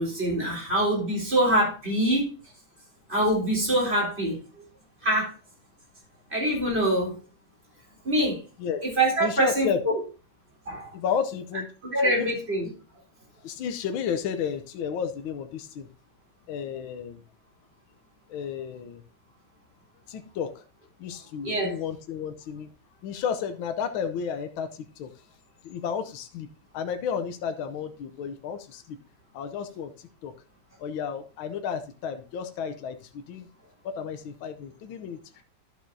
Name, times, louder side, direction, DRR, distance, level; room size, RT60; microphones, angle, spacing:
voice 1, 0.0-2.3 3.1-4.6 5.0-5.3 6.3-7.1 8.0-8.4 9.0-9.7 10.7-10.9 11.8-12.7 21.4-21.8, right 1 dB, 30° right, 4.0 m, -24 dB
voice 2, 9.2-9.8 10.9-11.7 12.1-12.3 13.4-15.9 16.5-17.2 18.3-19.0 20.1-20.6 21.0-22.7 23.0-25.1 25.6-26.5 26.7-29.0 29.3-30.3 30.8-33.5 33.8-35.4, left 7 dB, 75° left, 1.5 m, -32 dB
11.0 x 7.4 x 2.7 m
omnidirectional pair, 2.3 m